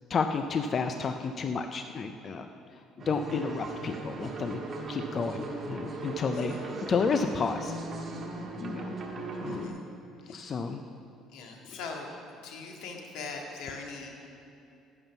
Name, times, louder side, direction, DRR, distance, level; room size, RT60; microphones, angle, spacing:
voice 1, 0.1-2.5 3.1-4.6 4.9-7.7 8.6-8.9 9.4-9.8 10.3-10.8, left 5 dB, 30° left, 6 dB, 0.4 m, -31 dB
sound 1, 3.0-9.7, right 3 dB, 30° right, 1.3 m, -38 dB
voice 2, 6.3-6.7 9.5-9.8 10.2-10.6 11.3-12.1 12.4-14.1, left 4 dB, 75° left, 1 dB, 1.8 m, -41 dB
11.0 x 9.1 x 7.0 m, 2.7 s
cardioid pair, 170°, 0 cm